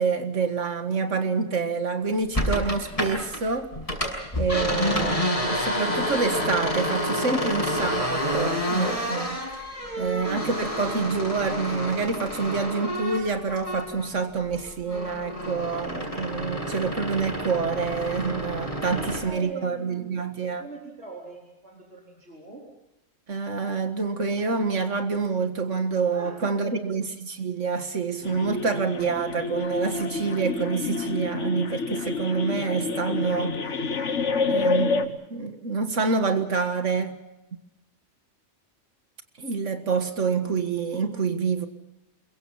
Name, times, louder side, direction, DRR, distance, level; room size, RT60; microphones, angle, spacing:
voice 1, 0.0-3.7 4.3-9.4 10.0-20.7 23.3-33.6 34.5-37.2 39.4-41.7, right 4 dB, 80° right, 7 dB, 2.1 m, -27 dB
sound 1, 2.3-3.4 3.7-14.1 14.4-19.3, equal, 30° left, 6.4 m, -29 dB
voice 2, 9.7-10.3 18.7-20.1 20.4-22.7 26.1-26.9, right 3 dB, 65° right, -3 dB, 4.6 m, -42 dB
sound 2, 28.2-35.1, left 4 dB, 75° left, 1.7 m, -28 dB
27.5 x 23.0 x 5.8 m, 0.96 s
omnidirectional pair, 1.2 m